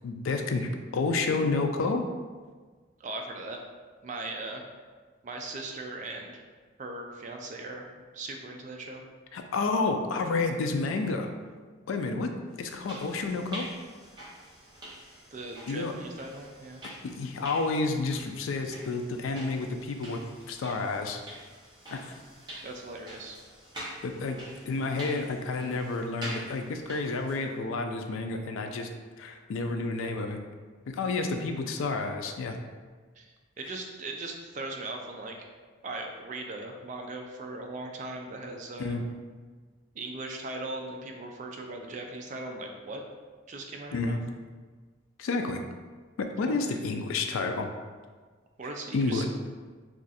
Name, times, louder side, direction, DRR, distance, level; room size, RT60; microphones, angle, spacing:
voice 1, 0.0-2.1 9.3-11.3 11.9-12.3 12.6-13.7 15.7-15.9 16.8-20.2 20.5-21.2 21.9-22.2 24.0-28.9 29.2-30.4 30.9-32.6 38.8-39.0 43.9-44.2 45.2-45.6 46.2-47.7 48.9-49.3, left 3 dB, 80° left, 5 dB, 0.3 m, -30 dB
voice 2, 3.0-3.6 4.0-4.6 5.2-6.4 6.8-7.9 8.1-9.0 15.3-16.8 22.6-23.4 33.2-33.3 33.6-35.4 35.8-39.0 39.9-43.0 43.5-44.2 46.5-46.6 48.6-49.3, right 2 dB, 35° right, 2 dB, 0.3 m, -39 dB
sound 1, 12.6-27.5, right 1 dB, 20° right, 0.7 m, -46 dB
2.5 x 2.4 x 4.0 m, 1.4 s
head